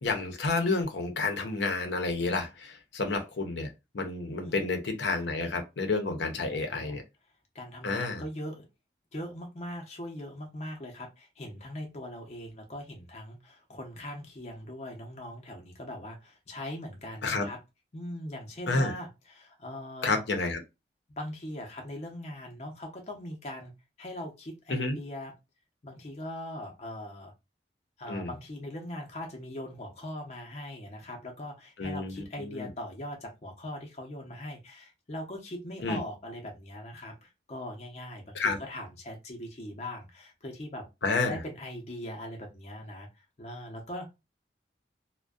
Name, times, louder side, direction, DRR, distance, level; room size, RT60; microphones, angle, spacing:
voice 1, 0.0-7.0 7.8-8.2 17.2-17.5 18.7-18.9 20.0-20.6 24.7-25.0 28.1-28.3 31.8-32.7 35.8-36.0 38.3-38.6 41.0-41.4, left 3 dB, 80° left, 0.7 m, -30 dB
voice 2, 6.4-7.0 7.5-8.7 9.1-17.6 17.9-20.2 21.1-23.7 24.0-25.3 25.8-27.3 28.0-40.9 41.2-44.1, left 1 dB, 40° left, 0.6 m, -41 dB
2.5 x 2.2 x 2.2 m
head